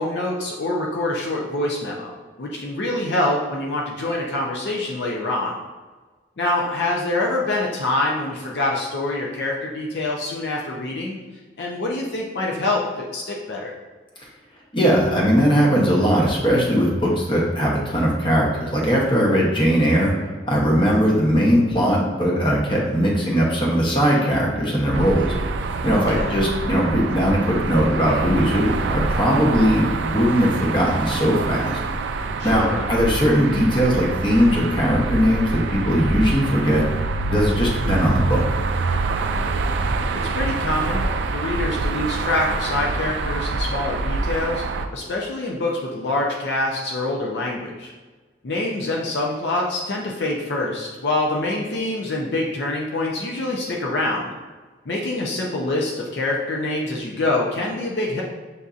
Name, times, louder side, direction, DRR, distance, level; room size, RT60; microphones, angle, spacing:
voice 1, 0.0-2.1 2.4-5.6 6.4-11.2 11.6-13.7 25.9-26.4 32.4-32.9 37.5-37.7 40.1-41.1 41.3-44.6 44.9-47.9 48.4-54.3 54.9-58.2, left 2 dB, 60° left, -2 dB, 0.5 m, -25 dB
voice 2, 14.7-20.1 20.5-25.3 25.8-31.8 32.4-36.8 37.3-38.4, equal, 25° left, -3 dB, 0.8 m, -19 dB
sound 1, 24.9-44.9, right 3 dB, 70° right, 0.3 m, -25 dB
6.7 x 2.6 x 2.4 m, 1.3 s
head